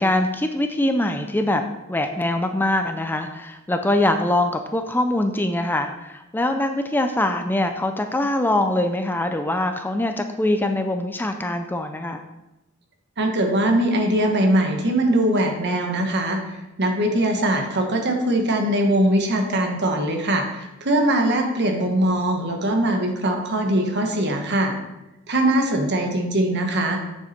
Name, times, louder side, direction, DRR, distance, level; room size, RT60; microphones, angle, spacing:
voice 1, 0.0-1.6 1.9-12.2, left 1 dB, 10° left, 6 dB, 0.4 m, -23 dB
voice 2, 13.2-24.8 25.3-27.0, right 1 dB, 55° right, 3 dB, 1.4 m, -21 dB
8.6 x 6.7 x 4.3 m, 0.96 s
head